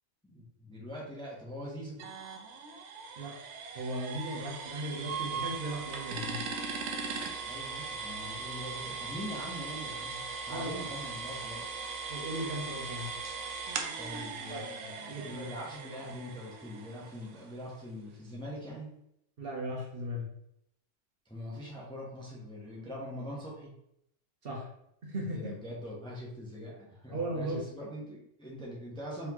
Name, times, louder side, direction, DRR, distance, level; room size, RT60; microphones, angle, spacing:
voice 1, 0.2-2.0 7.4-11.8 14.0-18.9 21.3-23.7 25.3-29.3, equal, 5° left, -4 dB, 0.8 m, -43 dB
sound 1, 2.0-17.7, right 5 dB, 70° right, 0.9 m, -39 dB
voice 2, 3.7-6.4 10.5-10.7 12.1-13.1 14.5-14.6 15.1-15.5 19.4-20.2 24.4-24.7 25.0-25.4 27.1-27.6, right 1 dB, 50° right, -2 dB, 1.1 m, -36 dB
4.1 x 3.5 x 2.9 m, 0.76 s
omnidirectional pair, 1.3 m